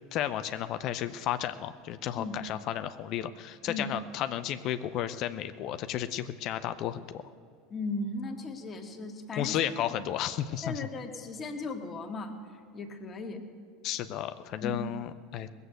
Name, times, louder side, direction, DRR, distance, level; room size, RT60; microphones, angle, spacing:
voice 1, 0.1-7.2 9.4-10.9 13.8-15.5, left 11 dB, 55° left, 11 dB, 0.6 m, -33 dB
voice 2, 7.7-9.5 10.6-12.4 12.7-13.4 14.6-14.8, left 3 dB, 30° left, 3 dB, 1.9 m, -36 dB
19.0 x 8.2 x 8.0 m, 2.2 s
hypercardioid pair, 85°, 0 cm